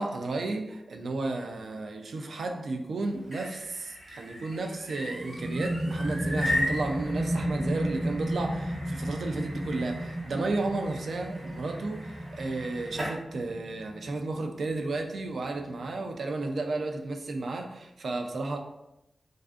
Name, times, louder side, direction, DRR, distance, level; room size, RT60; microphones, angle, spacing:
voice 1, 0.0-18.6, right 2 dB, 75° right, 3 dB, 0.3 m, -33 dB
sound 1, 3.1-13.2, left 1 dB, 35° right, 0.7 m, -38 dB
sound 2, 5.1-16.4, equal, 10° right, 0.4 m, -34 dB
2.4 x 2.3 x 2.3 m, 0.87 s
wide cardioid pair, 115°, 0 cm